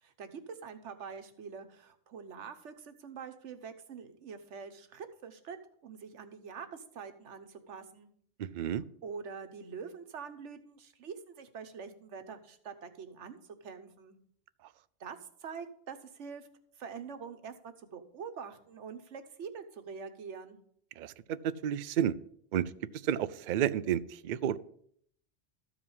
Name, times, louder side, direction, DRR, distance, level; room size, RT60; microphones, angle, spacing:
voice 1, 0.0-5.6 5.8-8.1 9.0-14.2 15.0-16.5 16.8-20.6, right 6 dB, 85° right, 9 dB, 1.3 m, -45 dB
voice 2, 21.0-22.2 22.5-22.7 23.0-24.6, right 10 dB, 60° right, 15 dB, 0.5 m, -31 dB
13.5 x 4.9 x 5.5 m, 0.65 s
omnidirectional pair, 1.2 m